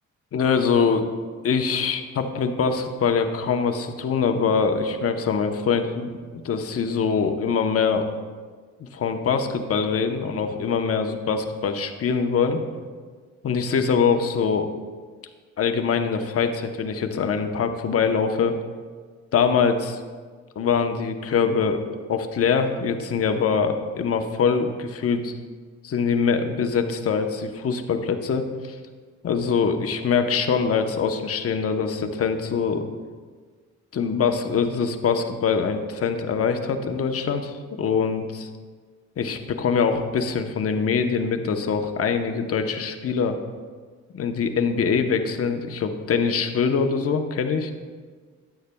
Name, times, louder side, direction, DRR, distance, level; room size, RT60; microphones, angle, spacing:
voice 1, 0.3-1.1 1.4-8.1 8.8-12.6 13.4-14.7 15.6-18.5 19.3-20.0 20.6-25.3 25.8-28.8 29.2-32.8 33.9-38.5 39.2-43.4 44.1-47.7, left 6 dB, 50° left, 6 dB, 0.9 m, -23 dB
13.0 x 9.1 x 2.3 m, 1.5 s
cardioid pair, 90°, 30 cm